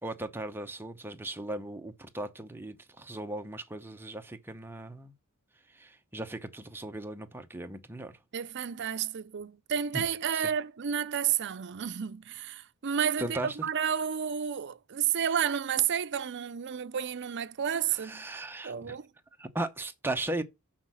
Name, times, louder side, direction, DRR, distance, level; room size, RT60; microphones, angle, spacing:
voice 1, 0.0-5.1 5.7-8.2 9.9-10.0 10.3-10.5 13.2-13.7 17.9-19.0 19.4-20.4, right 1 dB, 10° right, 0.8 m, -37 dB
voice 2, 8.3-18.2 18.6-19.1, right 8 dB, 55° right, 0.6 m, -31 dB
6.3 x 5.9 x 6.0 m
head